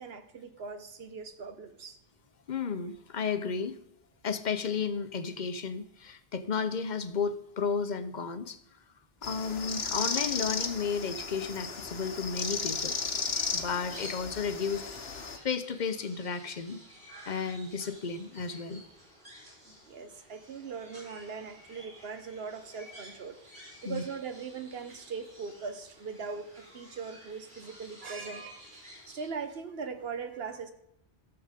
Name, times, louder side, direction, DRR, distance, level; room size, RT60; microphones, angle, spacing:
voice 1, 0.0-2.0 19.6-23.4 23.8-30.7, right 5 dB, 75° right, 9 dB, 1.2 m, -40 dB
voice 2, 2.5-3.8 4.2-8.6 9.2-12.9 13.5-15.1 15.4-16.8 17.3-18.8 23.8-24.0, left 5 dB, 50° left, 11 dB, 0.9 m, -33 dB
sound 1, 9.2-15.4, left 5 dB, 75° left, 1.4 m, -34 dB
sound 2, 12.8-29.3, equal, 50° right, 4.3 m, -52 dB
13.0 x 7.0 x 5.1 m, 0.77 s
omnidirectional pair, 1.0 m